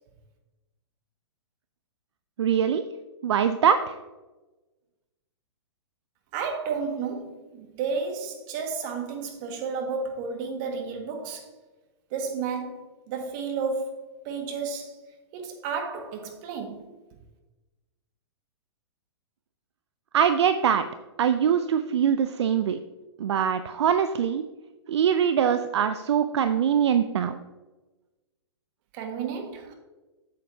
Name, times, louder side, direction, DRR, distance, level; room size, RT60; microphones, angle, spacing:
voice 1, 2.4-2.8 3.2-4.0 20.1-20.8 21.2-22.8 23.2-24.4 24.9-27.4, right 8 dB, 70° right, 0.5 m, -23 dB
voice 2, 6.3-11.5 12.1-13.9 14.2-15.0 15.3-16.8 28.9-29.7, right 5 dB, 45° right, 1.6 m, -32 dB
8.5 x 7.4 x 2.7 m
hypercardioid pair, 120°, 15 cm